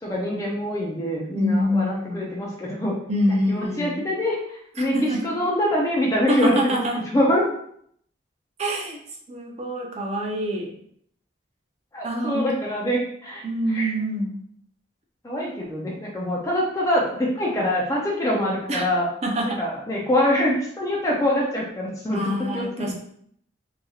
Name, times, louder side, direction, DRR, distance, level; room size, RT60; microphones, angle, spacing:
voice 1, 0.0-3.0 3.3-4.9 5.2-6.8 7.1-7.4 11.9-13.4 13.7-13.9 15.2-19.1 19.6-22.9, left 1 dB, 15° left, -4 dB, 0.5 m, -24 dB
voice 2, 1.3-2.3 3.1-4.0 4.9-5.3 6.3-7.0 8.6-9.0 9.3-10.7 12.0-12.5 13.4-14.4 18.7-18.8 19.2-19.6 22.1-22.9, equal, 35° right, 0 dB, 0.6 m, -25 dB
3.1 x 2.6 x 2.3 m, 0.66 s
head